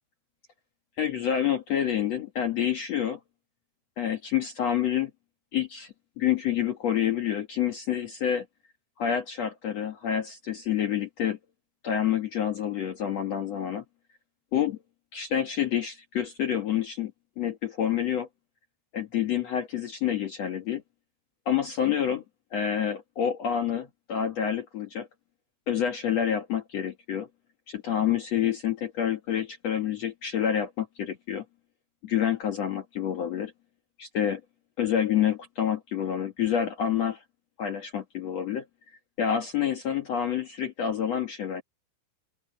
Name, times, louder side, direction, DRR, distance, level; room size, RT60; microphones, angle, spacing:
voice 1, 1.0-3.2 4.0-5.1 5.5-8.4 9.0-11.4 11.8-13.8 14.5-14.8 15.1-17.1 17.4-18.3 18.9-20.8 21.4-22.2 22.5-25.1 25.7-27.3 27.7-31.4 32.0-33.5 34.0-34.4 34.8-37.2 37.6-38.6 39.2-41.6, left 9 dB, 70° left, 1.5 m, -28 dB
open air
omnidirectional pair, 5.4 m